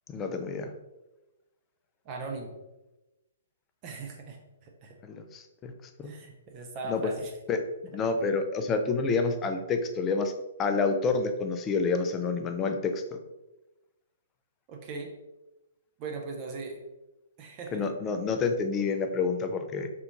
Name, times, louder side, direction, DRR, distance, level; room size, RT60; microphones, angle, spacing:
voice 1, 0.1-0.7 5.0-5.7 6.0-6.1 6.9-7.0 7.5-7.6 7.9-10.3 10.6-13.0 17.7-19.9, left 4 dB, 20° left, 6 dB, 0.3 m, -28 dB
voice 2, 2.0-2.5 3.8-4.9 6.0-7.3 14.7-15.1 16.0-16.8 17.4-17.9, right 3 dB, 35° right, 2 dB, 0.5 m, -39 dB
3.4 x 2.4 x 2.9 m, 1.0 s
figure-of-eight pair, 125°, 0 cm